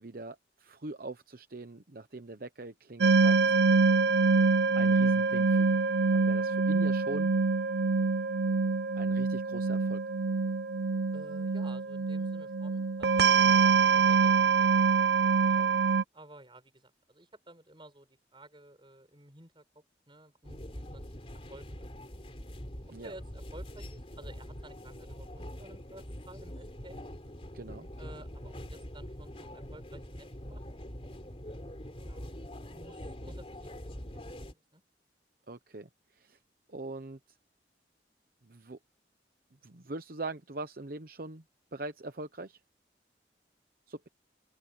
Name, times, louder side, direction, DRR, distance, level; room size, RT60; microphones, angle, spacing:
voice 1, 0.0-3.4 4.7-5.8 6.1-7.3 9.0-10.0 22.9-23.1 27.5-27.9 35.5-36.4 36.7-37.2 38.4-38.8 39.6-41.4 41.7-42.6 43.9-44.1, right 2 dB, 55° right, 0.9 m, -42 dB
sound 1, 3.0-16.0, right 4 dB, 70° right, 0.6 m, -25 dB
voice 2, 11.1-15.8 16.1-21.1 21.5-21.7 23.0-27.0 28.0-30.6 31.9-32.2 32.6-34.8, right 1 dB, 30° right, 7.1 m, -53 dB
sound 2, 20.4-34.5, equal, 35° left, 3.6 m, -44 dB
open air
head